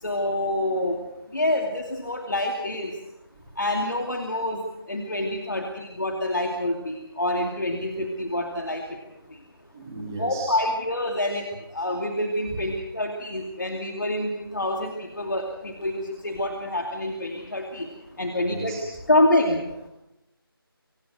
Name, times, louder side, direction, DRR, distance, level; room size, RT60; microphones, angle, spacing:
voice 1, 0.0-1.0 1.3-2.9 3.6-4.6 4.9-8.8 10.2-11.4 11.7-17.9 18.2-18.7 19.1-19.6, left 1 dB, 50° left, 3 dB, 2.5 m, -26 dB
voice 2, 9.7-10.6 12.5-12.6 18.5-18.8, right 2 dB, 10° right, -3 dB, 2.3 m, -36 dB
24.5 x 17.5 x 6.6 m, 0.91 s
figure-of-eight pair, 170°, 13 cm